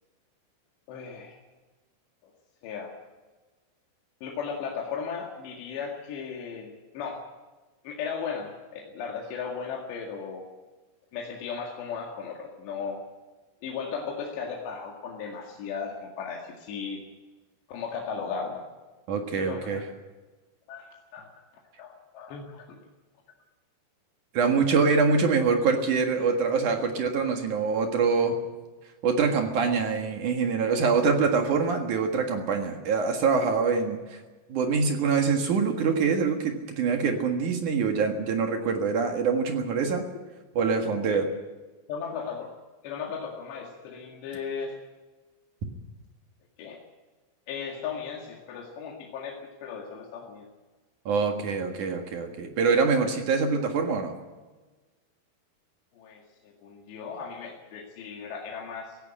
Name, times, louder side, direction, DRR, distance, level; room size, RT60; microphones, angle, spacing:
voice 1, 0.9-1.4 2.6-2.9 4.2-7.2 7.8-10.5 11.1-13.0 13.6-17.0 17.7-18.6 19.3-19.8 20.7-21.3 21.8-22.8 41.0-41.2 41.9-42.5 42.8-44.8 46.6-46.8 47.5-50.5 55.9-59.0, left 6 dB, 65° left, 0 dB, 3.9 m, -36 dB
voice 2, 19.1-19.8 24.3-28.4 29.0-34.2 34.5-40.1 40.6-41.3 51.1-54.1, right 5 dB, 60° right, 4 dB, 2.1 m, -25 dB
17.5 x 16.5 x 8.9 m, 1.2 s
omnidirectional pair, 6.0 m